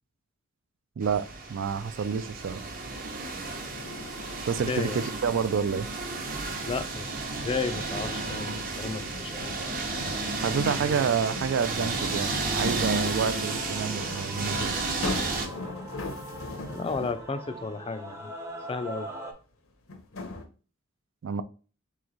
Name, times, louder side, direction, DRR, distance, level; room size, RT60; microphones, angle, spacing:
sound 1, 1.0-15.5, right 3 dB, 45° right, 0.8 m, -32 dB
voice 1, 1.0-2.6 4.5-5.9 10.4-14.7 21.2-21.4, right 6 dB, 65° right, 0.3 m, -28 dB
sound 2, 2.2-17.3 19.1-19.2 19.9-20.5, left 3 dB, 80° left, 0.8 m, -41 dB
voice 2, 4.7-5.0 6.6-9.6 16.7-18.3 18.7-19.1, left 4 dB, 25° left, 0.4 m, -33 dB
Male singing / Female singing / Musical instrument, 9.8-19.3, right 1 dB, 15° right, 0.6 m, -43 dB
3.4 x 3.1 x 3.9 m
head